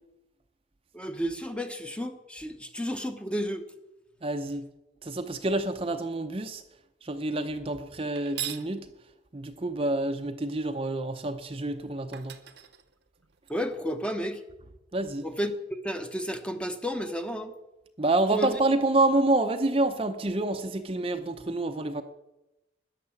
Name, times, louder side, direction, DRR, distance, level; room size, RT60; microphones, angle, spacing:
voice 1, 0.9-3.6 13.5-14.4 15.2-15.5 15.8-17.5 18.3-18.6, equal, 5° left, 7 dB, 0.9 m, -32 dB
voice 2, 4.2-4.7 5.0-6.6 7.0-8.9 9.3-12.4 14.9-15.3 18.0-22.0, right 2 dB, 30° right, 7 dB, 0.7 m, -28 dB
sound 1, 8.1-8.7 11.6-11.7 12.1-13.5, right 12 dB, 60° right, 0.9 m, -39 dB
13.5 x 9.8 x 7.1 m, 0.97 s
head